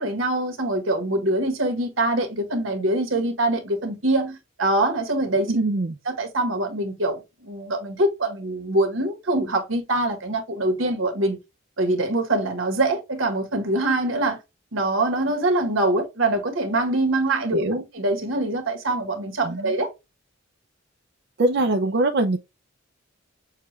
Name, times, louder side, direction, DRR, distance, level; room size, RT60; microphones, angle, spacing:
voice 1, 0.0-5.5 6.1-11.4 11.8-14.4 14.7-17.6 17.9-19.9, right 2 dB, 90° right, 1.5 m, -24 dB
voice 2, 5.5-6.0 17.5-17.9 19.4-19.7 21.4-22.4, right 2 dB, 55° right, 0.5 m, -22 dB
6.5 x 2.3 x 3.1 m
head